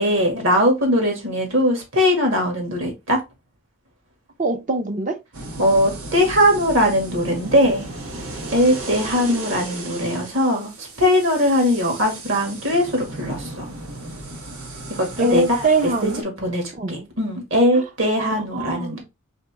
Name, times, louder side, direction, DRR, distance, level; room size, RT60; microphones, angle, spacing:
voice 1, 0.0-3.2 5.6-7.9 8.5-13.7 15.0-15.7 16.0-16.1 16.4-19.0, equal, 65° right, 2.0 m, -20 dB
voice 2, 4.4-5.2 15.2-16.2 16.8-16.9 18.2-19.0, right 2 dB, 35° right, 0.6 m, -23 dB
sound 1, 5.3-16.2, right 2 dB, 90° right, 1.4 m, -35 dB
4.2 x 3.7 x 3.4 m
head